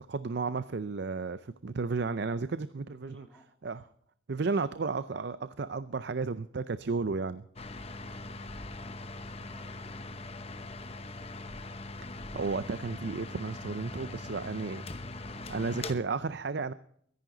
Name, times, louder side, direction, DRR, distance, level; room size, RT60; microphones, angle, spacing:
voice 1, 0.0-3.2 3.6-3.8 4.3-7.5 12.3-14.8 15.5-16.7, right 4 dB, 55° right, 14 dB, 0.5 m, -33 dB
voice 2, 2.9-3.5 9.4-10.5, equal, 5° left, 1 dB, 2.7 m, -60 dB
sound 1, 7.6-15.9, left 2 dB, 30° left, 0.9 m, -41 dB
23.5 x 11.0 x 3.9 m, 0.66 s
head